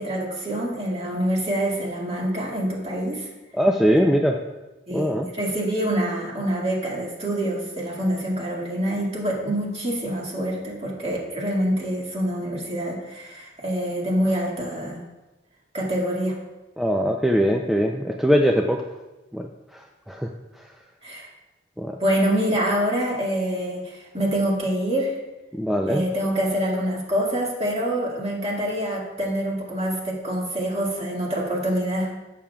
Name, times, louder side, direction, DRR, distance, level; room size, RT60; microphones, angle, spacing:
voice 1, 0.0-3.3 4.9-15.0 15.7-16.4 21.0-21.3 22.0-25.1 25.9-32.1, right 1 dB, 30° right, -3 dB, 1.8 m, -26 dB
voice 2, 3.6-4.4 4.9-5.3 16.8-18.8 19.3-19.5 20.1-20.3 21.8-22.0 25.5-26.0, equal, ahead, 1 dB, 0.4 m, -21 dB
13.5 x 7.2 x 2.3 m, 1.1 s
head